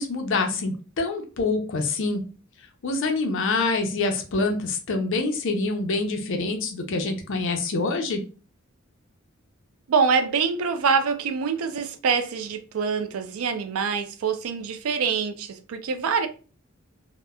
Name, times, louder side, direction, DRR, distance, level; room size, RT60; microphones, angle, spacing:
voice 1, 0.0-2.2 2.6-8.2, left 3 dB, 65° left, 0.5 m, -26 dB
voice 2, 9.9-16.3, right 5 dB, 85° right, 0.4 m, -25 dB
2.8 x 2.0 x 2.2 m
head